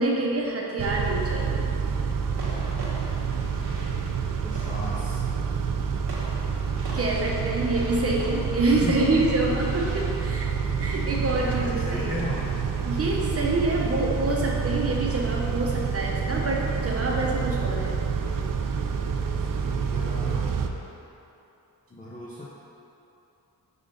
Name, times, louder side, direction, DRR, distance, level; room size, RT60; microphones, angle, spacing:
voice 1, 0.0-1.6 6.9-10.5 10.8-12.2 12.8-17.9, right 2 dB, 40° right, -2 dB, 0.8 m, -26 dB
Car / Idling / Accelerating revving vroom, 0.8-20.7, right 6 dB, 60° right, 0.5 m, -28 dB
sound 1, 2.4-15.8, right 1 dB, 90° right, 1.2 m, -44 dB
voice 2, 4.4-5.2 8.8-8.9 11.4-12.6 19.4-20.5 21.9-22.4, left 1 dB, 20° left, -7 dB, 0.6 m, -36 dB
5.5 x 3.7 x 5.1 m, 2.9 s
wide cardioid pair, 145°, 37 cm